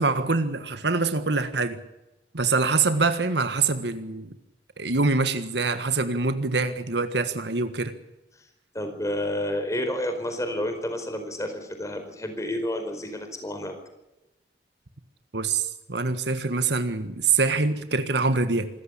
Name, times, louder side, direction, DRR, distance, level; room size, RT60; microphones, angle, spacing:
voice 1, 0.0-1.8 2.3-4.3 4.8-7.9 15.3-18.7, right 4 dB, 75° right, 10 dB, 1.6 m, -25 dB
voice 2, 8.7-13.8, left 1 dB, 20° left, 7 dB, 4.7 m, -30 dB
26.0 x 15.0 x 8.5 m, 0.96 s
head